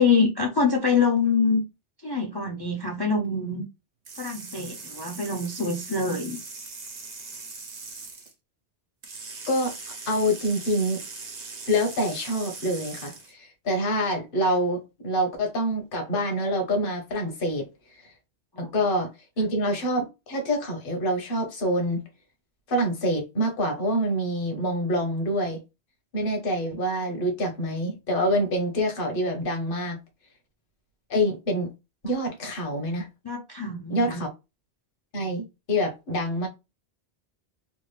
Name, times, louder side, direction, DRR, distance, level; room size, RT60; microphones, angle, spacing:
voice 1, 0.0-1.6 2.0-3.6 4.2-6.4 18.5-18.7 33.2-34.2, left 5 dB, 30° left, 0.5 m, -25 dB
sound 1, 4.1-8.3 9.0-13.3, right 4 dB, 80° right, 1.2 m, -40 dB
voice 2, 10.1-11.0 11.7-17.7 18.6-19.1 19.4-22.0 22.7-25.6 26.1-30.0 31.1-31.7 32.0-33.1 33.9-34.3 35.1-36.5, equal, 55° left, 1.2 m, -26 dB
3.5 x 2.4 x 3.2 m
omnidirectional pair, 1.1 m